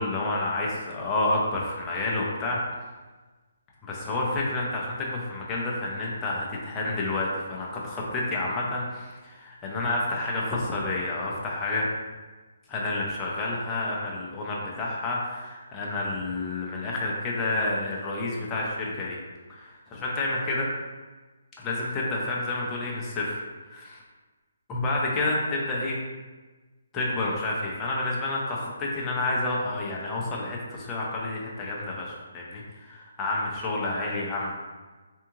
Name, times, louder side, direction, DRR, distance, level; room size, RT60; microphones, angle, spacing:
voice 1, 0.0-2.6 3.8-11.9 12.7-19.2 19.5-20.7 21.6-24.0 24.7-26.0 26.9-34.6, left 2 dB, 10° left, -4 dB, 0.5 m, -29 dB
3.5 x 3.5 x 3.0 m, 1.3 s
hypercardioid pair, 175°, 0 cm